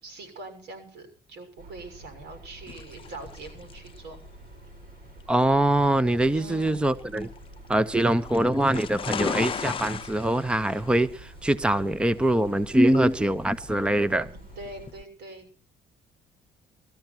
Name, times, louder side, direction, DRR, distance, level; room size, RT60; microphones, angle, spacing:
voice 1, 0.0-4.2 6.3-6.8 14.3-15.6, right 2 dB, 85° right, 6 dB, 6.6 m, -43 dB
sound 1, 1.6-14.9, right 2 dB, 60° right, 4.9 m, -48 dB
sound 2, 2.7-15.0, left 7 dB, 30° left, 0.7 m, -38 dB
voice 2, 5.3-7.3 7.7-14.3, right 1 dB, 5° right, 16 dB, 0.7 m, -23 dB
20.5 x 13.5 x 4.4 m, 0.38 s
cardioid pair, 110°, 17 cm